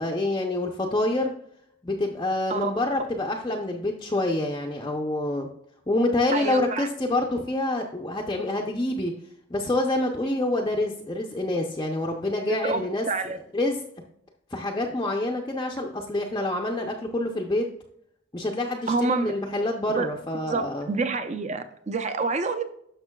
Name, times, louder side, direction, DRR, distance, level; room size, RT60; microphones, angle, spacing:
voice 1, 0.0-1.3 1.8-5.5 5.9-9.1 9.5-13.0 13.5-13.8 14.5-17.6 18.3-20.9, left 2 dB, 20° left, 0 dB, 0.5 m, -27 dB
voice 2, 6.3-6.9 12.5-13.4 18.9-19.3 19.9-20.1 20.4-22.6, right 4 dB, 35° right, 9 dB, 0.5 m, -28 dB
10.5 x 6.5 x 2.2 m, 0.71 s
head